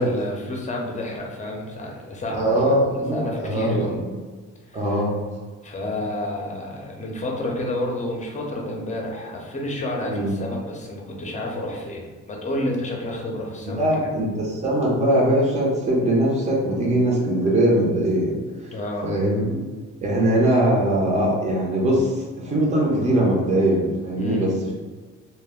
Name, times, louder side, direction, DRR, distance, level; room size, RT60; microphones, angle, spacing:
voice 1, 0.0-2.6 3.1-4.0 4.7-5.0 5.6-13.9 18.7-19.1 24.2-24.5, left 1 dB, 25° left, -1 dB, 0.7 m, -30 dB
voice 2, 2.3-4.1 4.7-5.1 10.1-10.3 13.8-18.4 18.6-18.7 19.0-19.6 20.0-24.7, right 1 dB, 25° right, -4 dB, 0.7 m, -21 dB
2.2 x 2.1 x 3.6 m, 1.4 s
cardioid pair, 85°, 29 cm